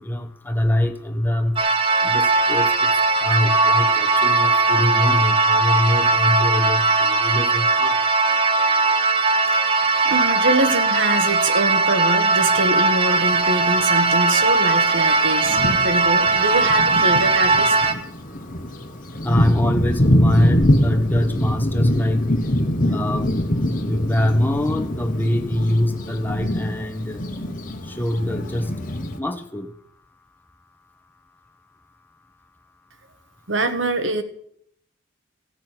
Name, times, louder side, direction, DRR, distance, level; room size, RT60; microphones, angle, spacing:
voice 1, 0.0-1.6 2.0-2.7 3.2-7.9 19.2-22.3 22.9-23.5 23.7-27.2 28.0-28.7 29.2-29.7, left 1 dB, 10° left, 5 dB, 1.2 m, -23 dB
sound 1, 1.6-17.9, right 3 dB, 30° right, 1.2 m, -19 dB
sound 2, 3.5-15.2, right 2 dB, 10° right, 1.3 m, -28 dB
voice 2, 10.0-17.7 33.5-34.2, right 2 dB, 75° right, 9 dB, 1.5 m, -24 dB
Thunder, 13.2-13.3 14.3-14.4 14.9-15.0 15.4-29.2, equal, 45° left, 1.4 m, -24 dB
15.5 x 6.3 x 9.1 m, 0.67 s
head